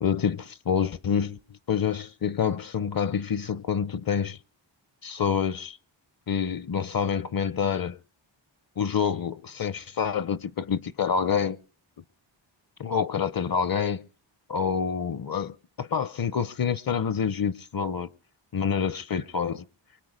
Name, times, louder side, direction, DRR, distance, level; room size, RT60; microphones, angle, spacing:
voice 1, 0.0-1.4 1.7-4.4 5.0-5.8 6.3-8.0 8.8-11.6 12.8-14.0 14.5-18.1 18.5-19.6, left 7 dB, 50° left, 0.7 m, -27 dB
23.5 x 8.5 x 5.1 m
wide cardioid pair, 125°, 46 cm